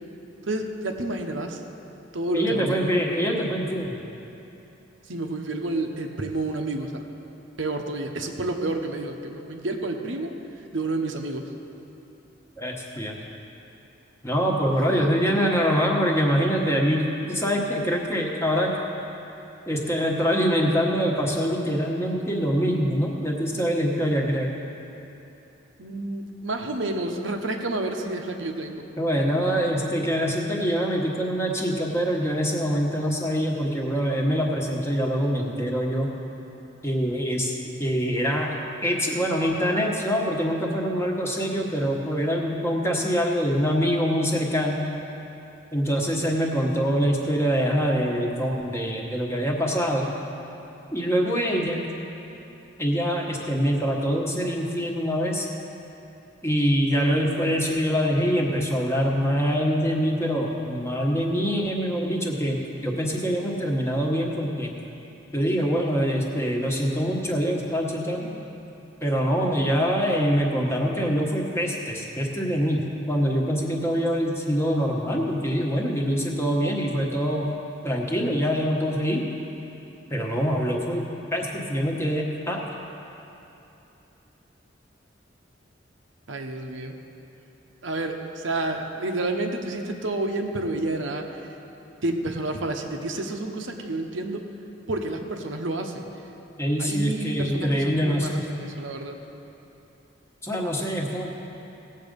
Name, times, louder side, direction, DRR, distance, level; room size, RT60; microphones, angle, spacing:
voice 1, 0.5-1.6 2.1-3.0 5.0-7.0 7.6-10.4 10.7-11.5 14.7-15.1 25.8-28.9 86.3-87.0 87.8-91.6 92.0-94.5 94.9-96.1 96.8-99.2, right 2 dB, 80° right, 3 dB, 1.0 m, -30 dB
voice 2, 2.3-4.0 12.6-13.2 14.2-18.7 19.7-24.5 29.0-36.1 36.8-37.5 37.8-44.9 45.7-50.1 50.9-51.8 52.8-55.5 56.4-64.7 65.3-68.4 69.0-72.8 73.1-77.5 77.8-79.2 80.1-81.0 81.3-82.6 96.6-98.4 100.4-101.3, equal, 15° left, -1 dB, 1.2 m, -24 dB
17.5 x 7.6 x 5.3 m, 2.9 s
head